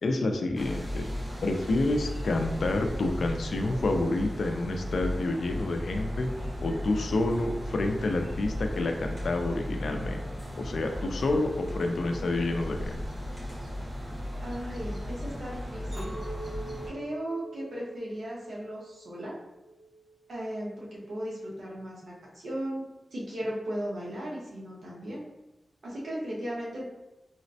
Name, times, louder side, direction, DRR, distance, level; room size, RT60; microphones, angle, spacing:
voice 1, 0.0-1.1 1.4-6.3 6.6-10.2 10.6-13.0, left 2 dB, 70° left, 4 dB, 0.3 m, -28 dB
sound 1, 0.6-16.9, equal, 35° right, 1.1 m, -36 dB
voice 2, 14.4-16.2 16.9-19.3 20.3-25.3 25.8-26.8, equal, 75° right, -5 dB, 0.9 m, -36 dB
Chink clink, 15.9-20.3 20.7-21.2, right 2 dB, 55° right, 1.2 m, -45 dB
4.0 x 2.0 x 2.6 m, 0.98 s
wide cardioid pair, 150°, 0 cm